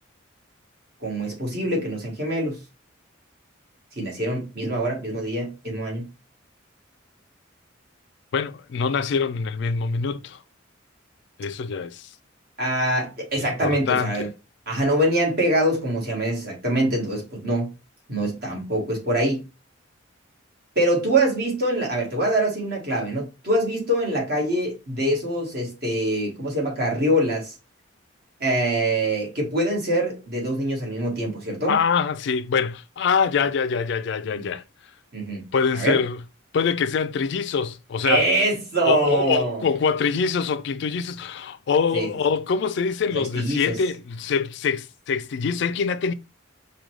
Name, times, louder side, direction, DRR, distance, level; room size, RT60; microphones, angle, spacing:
voice 1, 1.0-2.6 4.0-6.1 12.6-14.3 14.7-17.7 18.1-19.4 20.7-27.5 28.4-31.7 34.3-34.5 35.1-36.0 38.0-39.6 41.9-42.1 43.1-43.8, right 1 dB, 50° right, 1.5 m, -24 dB
voice 2, 8.3-10.4 11.4-12.1 13.4-14.3 31.7-34.6 35.5-36.2 36.5-38.3 38.8-46.1, left 5 dB, 60° left, 0.3 m, -24 dB
4.9 x 2.2 x 3.1 m
head